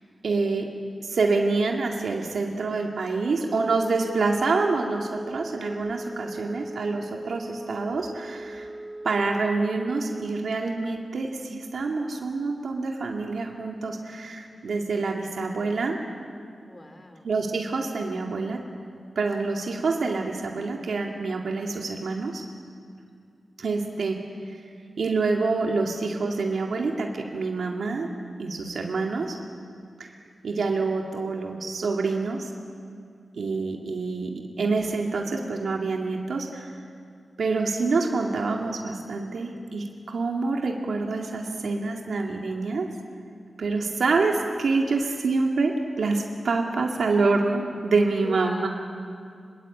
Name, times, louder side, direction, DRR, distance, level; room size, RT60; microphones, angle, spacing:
voice 1, 0.2-0.7 1.0-8.7 9.0-16.0 17.2-18.6 19.2-22.4 23.6-24.2 24.5-24.6 25.0-28.1 28.4-29.4 30.0-30.1 30.4-32.5 33.3-36.8 37.4-42.9 43.6-48.7, right 3 dB, 70° right, 1 dB, 2.2 m, -26 dB
Wind instrument woodwind instrument, 3.4-10.5, right 1 dB, 15° right, 6.9 m, -38 dB
voice 2, 16.7-17.3 43.7-43.8 44.9-45.0 48.2-48.7, left 1 dB, 25° left, 7 dB, 2.5 m, -39 dB
26.5 x 22.0 x 8.6 m, 2.3 s
wide cardioid pair, 170°, 0 cm